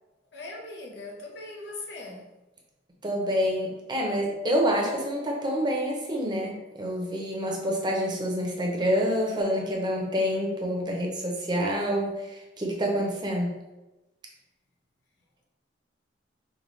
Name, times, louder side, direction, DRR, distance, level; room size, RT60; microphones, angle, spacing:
voice 1, 0.3-2.2, left 2 dB, 65° left, -1 dB, 0.9 m, -40 dB
voice 2, 3.0-12.2 12.6-13.6, equal, 25° right, -1 dB, 0.7 m, -27 dB
5.3 x 2.4 x 3.1 m, 1.0 s
head